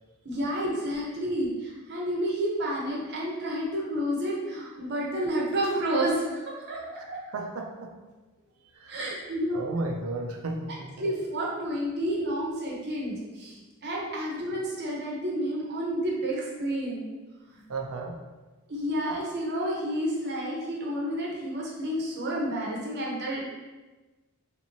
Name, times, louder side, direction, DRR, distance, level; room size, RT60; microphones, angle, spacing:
voice 1, 0.2-6.8 7.1-7.2 8.9-9.6 11.0-17.0 17.5-17.6 18.7-23.5, equal, 50° right, -3 dB, 0.8 m, -30 dB
voice 2, 6.9-7.9 8.6-9.0 9.5-11.0 17.7-18.2, right 2 dB, 80° right, 2 dB, 0.5 m, -34 dB
3.3 x 2.8 x 2.9 m, 1.2 s
head